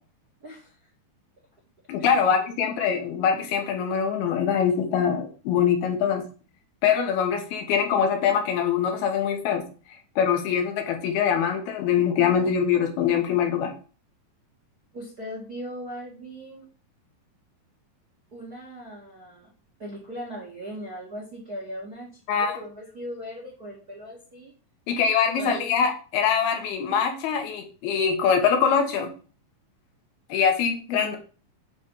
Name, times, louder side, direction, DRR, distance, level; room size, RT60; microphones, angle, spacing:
voice 1, 0.4-0.8 2.0-2.3 14.9-16.6 18.3-19.5 19.8-24.5 25.4-25.8 30.9-31.2, equal, 45° right, -2 dB, 1.2 m, -39 dB
voice 2, 1.9-6.2 6.8-9.6 10.2-13.7 22.3-22.6 24.9-29.1 30.3-31.2, left 7 dB, 80° left, 4 dB, 3.2 m, -23 dB
8.7 x 3.3 x 5.6 m, 0.37 s
omnidirectional pair, 4.3 m